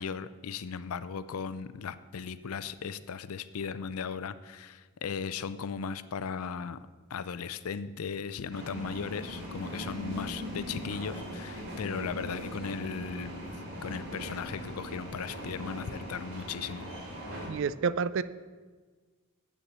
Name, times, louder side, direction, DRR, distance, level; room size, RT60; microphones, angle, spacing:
voice 1, 0.0-6.8 7.1-13.3 13.8-16.9, left 6 dB, 80° left, 15 dB, 0.5 m, -37 dB
sound 1, 8.5-17.5, equal, 85° right, 2.8 m, -40 dB
voice 2, 17.5-18.2, right 5 dB, 60° right, 16 dB, 0.4 m, -29 dB
8.3 x 6.9 x 7.4 m, 1.4 s
head